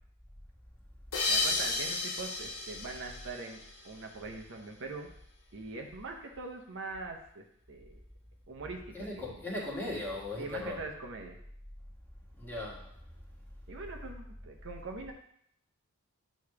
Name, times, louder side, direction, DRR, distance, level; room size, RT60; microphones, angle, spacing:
sound 1, 1.1-4.2, left 3 dB, 90° left, 1.1 m, -33 dB
voice 1, 1.3-5.1 5.5-8.0 8.5-9.4 10.4-11.4 13.7-15.1, right 3 dB, 60° right, 2 dB, 0.8 m, -42 dB
voice 2, 8.9-10.8 12.4-13.0, left 2 dB, 10° left, -4 dB, 1.5 m, -38 dB
8.6 x 3.1 x 4.7 m, 0.69 s
head